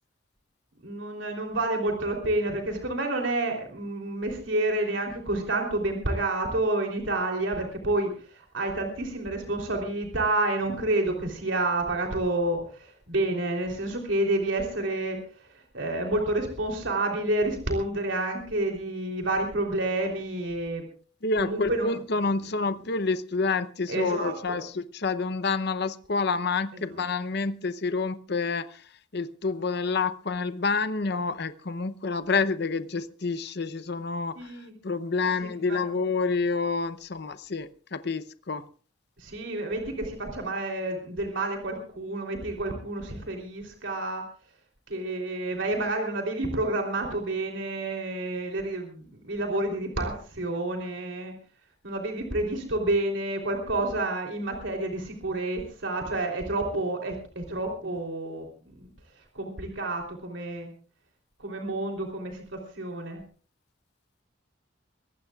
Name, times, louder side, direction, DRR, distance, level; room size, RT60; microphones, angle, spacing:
voice 1, 0.8-20.8 21.4-22.0 23.9-24.6 34.3-34.7 35.2-35.8 39.2-44.2 44.9-51.3 51.8-58.5 58.7-58.9 59.3-60.7 61.4-63.2, right 2 dB, 70° right, 2 dB, 3.4 m, -29 dB
voice 2, 21.2-28.8 29.1-34.4 34.8-38.6, left 4 dB, 55° left, 13 dB, 0.8 m, -28 dB
23.5 x 18.5 x 2.4 m, 0.41 s
head